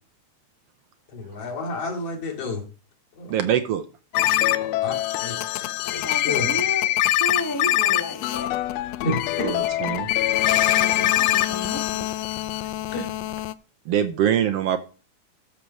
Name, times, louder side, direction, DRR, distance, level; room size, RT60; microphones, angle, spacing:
voice 1, 1.1-2.6 3.2-3.3 4.8-4.9 5.2-5.4 5.9-6.5 9.0-9.5 12.9-13.1, left 2 dB, 55° left, -1 dB, 3.6 m, -30 dB
voice 2, 3.3-3.8 9.4-10.1 13.9-14.8, right 10 dB, 70° right, 10 dB, 1.5 m, -23 dB
sound 1, 4.1-13.5, left 14 dB, 80° left, 1.5 m, -23 dB
voice 3, 5.8-8.5 10.8-12.0, left 2 dB, 10° left, 4 dB, 0.8 m, -33 dB
13.5 x 4.5 x 6.3 m, 0.36 s
omnidirectional pair, 3.4 m